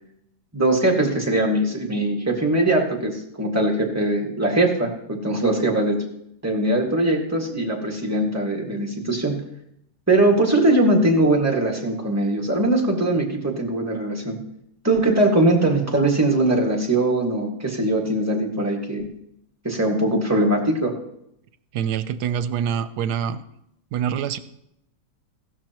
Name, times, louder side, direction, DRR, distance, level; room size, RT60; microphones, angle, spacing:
voice 1, 0.5-6.0 6.4-9.4 10.1-14.4 14.8-19.0 19.6-20.9, right 1 dB, 10° right, -1 dB, 1.9 m, -21 dB
voice 2, 21.7-23.4 23.9-24.4, right 8 dB, 85° right, 13 dB, 1.2 m, -25 dB
15.5 x 12.5 x 3.0 m, 0.78 s
omnidirectional pair, 1.7 m